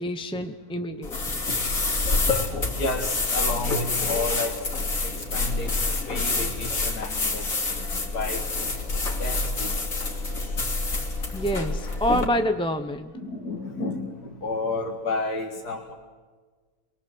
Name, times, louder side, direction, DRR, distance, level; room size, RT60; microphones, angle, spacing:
voice 1, 0.0-1.4 11.3-13.1, equal, 5° left, 7 dB, 0.6 m, -27 dB
sound 1, 1.0-12.3, left 3 dB, 55° left, 3.3 m, -27 dB
voice 2, 2.7-4.7 5.0-7.5 8.1-8.4 9.2-9.7 13.1-15.9, left 3 dB, 70° left, 0 dB, 2.6 m, -31 dB
24.0 x 23.0 x 7.9 m, 1.4 s
omnidirectional pair, 1.7 m